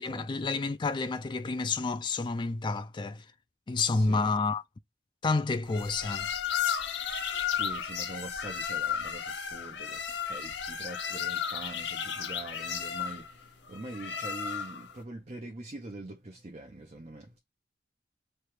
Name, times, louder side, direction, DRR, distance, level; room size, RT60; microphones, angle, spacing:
voice 1, 0.0-3.2 3.7-4.6 5.2-6.3, left 3 dB, 25° left, 0.3 m, -29 dB
voice 2, 3.9-4.4 7.5-17.4, right 2 dB, 40° right, 0.7 m, -44 dB
sound 1, 5.7-14.9, left 8 dB, 85° left, 0.6 m, -34 dB
3.3 x 2.3 x 4.4 m
head